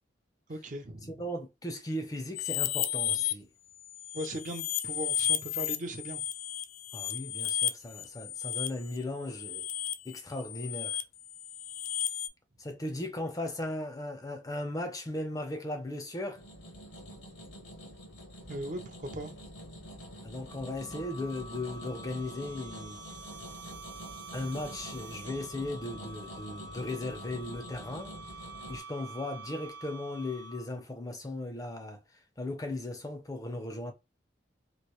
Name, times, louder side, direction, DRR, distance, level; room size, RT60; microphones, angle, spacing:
voice 1, 0.5-1.2 4.1-6.2 18.5-19.4 20.8-21.0, right 1 dB, 40° right, 0.5 m, -39 dB
voice 2, 1.1-3.5 6.9-9.7 10.1-11.0 12.6-16.4 20.2-23.0 24.3-28.2 28.7-32.0 32.4-33.9, left 1 dB, 20° left, 0.5 m, -37 dB
sound 1, 2.3-3.3 3.8-12.3, left 12 dB, 90° left, 0.4 m, -33 dB
sound 2, 16.4-28.8, equal, 70° left, 0.9 m, -47 dB
sound 3, 20.5-30.9, right 2 dB, 65° right, 0.9 m, -47 dB
3.0 x 2.5 x 2.9 m
head